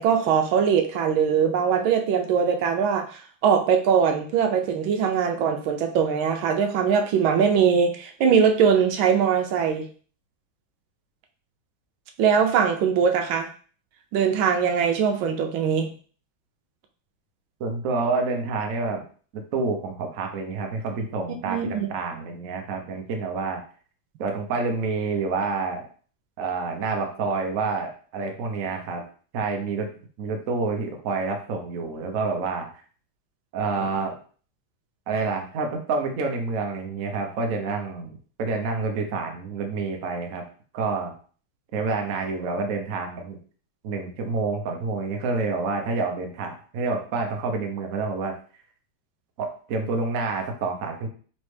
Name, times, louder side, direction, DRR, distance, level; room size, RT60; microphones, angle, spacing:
voice 1, 0.0-9.9 12.2-13.5 14.1-15.9 21.5-21.9, right 7 dB, 80° right, 4 dB, 1.4 m, -21 dB
voice 2, 17.6-19.0 19.5-23.6 24.2-25.9 26.4-29.0 29.3-29.9 30.2-32.7 33.5-34.2 35.1-40.4 40.7-41.1 41.7-43.4 43.8-48.3 49.4-51.1, right 4 dB, 60° right, 3 dB, 0.9 m, -28 dB
4.2 x 3.1 x 3.2 m, 0.42 s
omnidirectional pair, 2.2 m